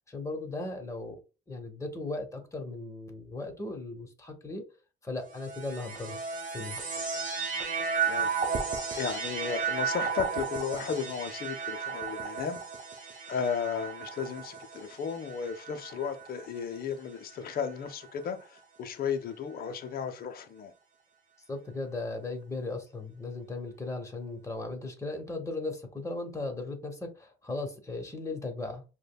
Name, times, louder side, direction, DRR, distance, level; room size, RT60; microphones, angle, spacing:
voice 1, 0.1-1.2 1.5-4.6 5.0-6.2 6.5-6.8 21.5-28.8, left 2 dB, 15° left, 1.0 m, -37 dB
sound 1, 5.3-16.8 17.6-18.3, right 5 dB, 40° right, 1.0 m, -34 dB
voice 2, 8.9-12.6 13.3-20.7, left 6 dB, 50° left, 0.5 m, -34 dB
5.0 x 2.2 x 2.2 m
cardioid pair, 90°, 20 cm